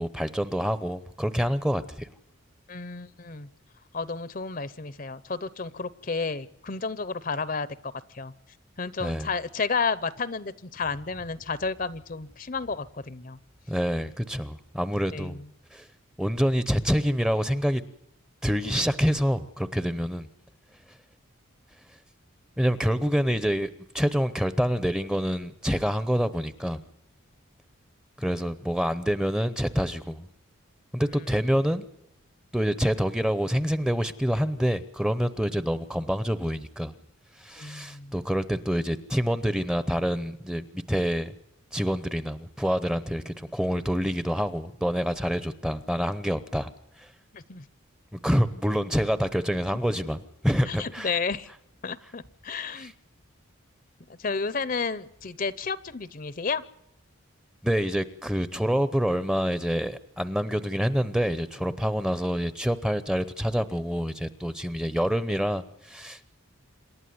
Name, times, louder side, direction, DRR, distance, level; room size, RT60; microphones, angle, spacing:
voice 1, 0.0-2.1 9.0-9.3 13.7-15.4 15.7-15.9 16.2-17.8 18.4-20.3 22.6-23.7 23.9-26.8 28.2-30.3 30.9-31.8 32.5-36.9 37.4-41.3 41.7-46.7 48.1-51.1 52.8-52.9 57.6-66.3, equal, 5° right, 13 dB, 0.7 m, -27 dB
voice 2, 2.7-3.5 3.9-8.3 8.8-13.4 15.1-15.4 37.6-38.1 47.3-47.6 50.7-51.5 51.8-52.9 54.2-56.6, left 4 dB, 40° left, 17 dB, 0.7 m, -32 dB
27.5 x 12.0 x 9.4 m, 0.77 s
head